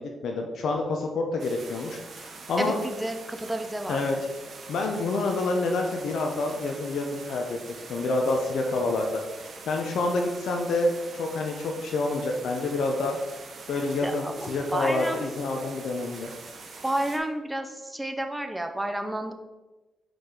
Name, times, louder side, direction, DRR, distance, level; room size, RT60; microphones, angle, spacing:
voice 1, 0.0-2.7 3.9-4.2 4.7-7.6 7.9-9.1 9.7-13.2 13.7-16.3, left 2 dB, 70° left, 2 dB, 0.6 m, -28 dB
sound 1, 1.4-17.2, right 4 dB, 45° right, 0.8 m, -44 dB
voice 2, 2.6-4.0 14.0-15.2 16.8-19.3, right 1 dB, 5° right, 5 dB, 0.5 m, -31 dB
4.6 x 4.2 x 4.8 m, 1.1 s
cardioid pair, 145°, 0 cm